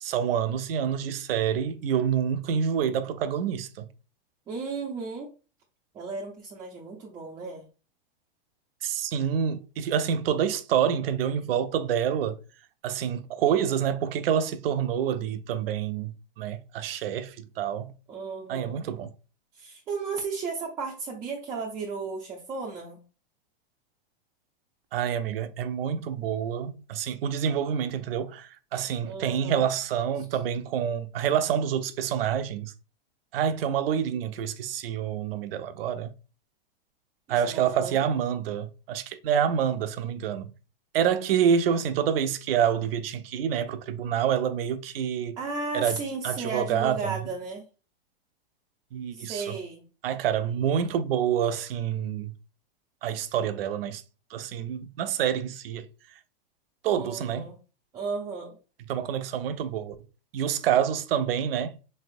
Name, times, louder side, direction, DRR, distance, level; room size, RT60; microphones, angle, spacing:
voice 1, 0.0-3.9 8.8-12.4 12.8-17.9 18.5-19.1 24.9-32.7 33.3-36.1 37.3-40.5 40.9-45.4 45.7-46.0 46.2-47.1 48.9-49.6 50.0-52.3 53.0-54.0 54.3-55.9 56.8-57.5 58.9-60.0 60.3-61.8, right 8 dB, 70° right, 0.6 m, -27 dB
voice 2, 4.5-5.3 5.9-7.7 18.1-18.8 19.5-23.0 29.0-29.6 37.3-38.1 45.4-47.6 49.1-49.8 56.9-57.6 57.9-58.6, right 4 dB, 15° right, 0.4 m, -34 dB
4.0 x 3.3 x 2.5 m
supercardioid pair, 155°, 30 cm